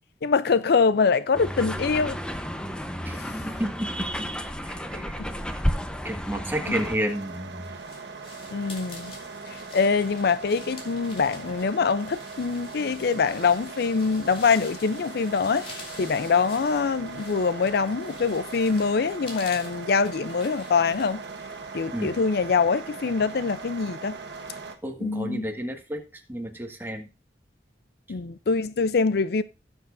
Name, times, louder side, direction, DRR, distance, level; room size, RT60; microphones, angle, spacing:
voice 1, 0.2-2.2 3.2-3.3 4.9-5.3 6.7-6.8 8.5-9.1 9.5-21.2 21.7-24.2 25.0-25.5 28.1-29.4, left 5 dB, 60° left, 0.5 m, -24 dB
sound 1, 1.3-7.0, equal, 5° left, 0.8 m, -31 dB
voice 2, 3.0-5.2 5.5-5.6 6.0-7.7 21.9-22.1 24.8-27.1, right 1 dB, 10° right, 1.6 m, -32 dB
sound 2, 6.6-24.8, right 4 dB, 70° right, 1.3 m, -40 dB
sound 3, 7.0-22.2, left 2 dB, 30° left, 2.8 m, -47 dB
17.5 x 7.1 x 2.5 m
head